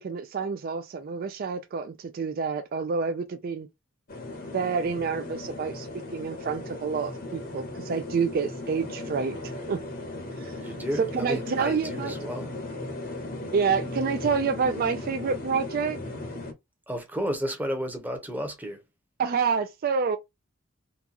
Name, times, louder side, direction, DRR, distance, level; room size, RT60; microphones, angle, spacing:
voice 1, 0.0-3.7 4.5-5.9 6.1-9.4 9.7-9.8 10.4-10.6 10.9-12.2 13.5-16.0 19.2-20.2, right 5 dB, 45° right, 0.3 m, -28 dB
sound 1, 4.1-16.5, left 2 dB, 45° left, 0.8 m, -37 dB
voice 2, 10.5-12.5 16.9-18.8, equal, 10° right, 0.8 m, -32 dB
3.8 x 2.3 x 2.8 m
head